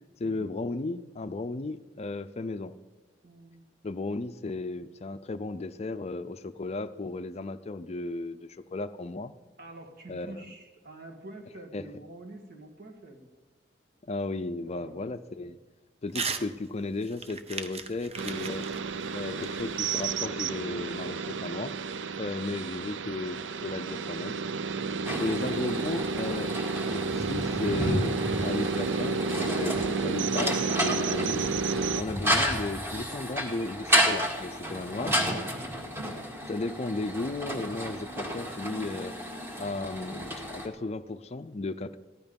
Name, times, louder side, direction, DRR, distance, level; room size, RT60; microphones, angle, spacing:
voice 1, 0.2-2.7 3.8-9.3 10.1-10.4 11.7-11.9 14.1-15.6 16.0-18.7 19.1-21.7 22.2-24.4 25.2-26.5 26.9-31.4 32.0-35.2 36.5-39.2 39.6-42.0, left 3 dB, 35° left, 11 dB, 0.5 m, -35 dB
voice 2, 3.2-3.6 9.6-13.3 14.7-15.1 22.5-22.9 24.9-25.4 29.9-30.2 35.5-35.7, right 2 dB, 55° right, 2 dB, 2.0 m, -47 dB
Crumpling crinkling / Tearing, 16.1-16.5 16.8-20.1, right 5 dB, 35° right, 0.8 m, -37 dB
sound 1, 18.2-32.0, right 4 dB, 80° right, 0.5 m, -31 dB
sound 2, 25.1-40.7, equal, 15° right, 1.7 m, -32 dB
15.0 x 11.5 x 5.3 m, 1.2 s
head